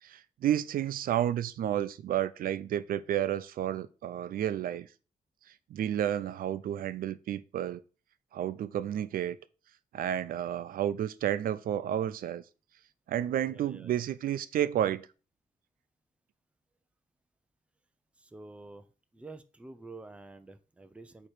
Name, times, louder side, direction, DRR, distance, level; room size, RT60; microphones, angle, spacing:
voice 1, 0.0-4.9 5.5-7.8 8.3-9.4 9.9-12.4 13.1-15.1, right 11 dB, 85° right, 0.4 m, -31 dB
voice 2, 13.5-14.0 18.2-18.8 19.1-21.3, right 3 dB, 10° right, 0.5 m, -48 dB
8.8 x 3.0 x 4.9 m
wide cardioid pair, 165°, 14 cm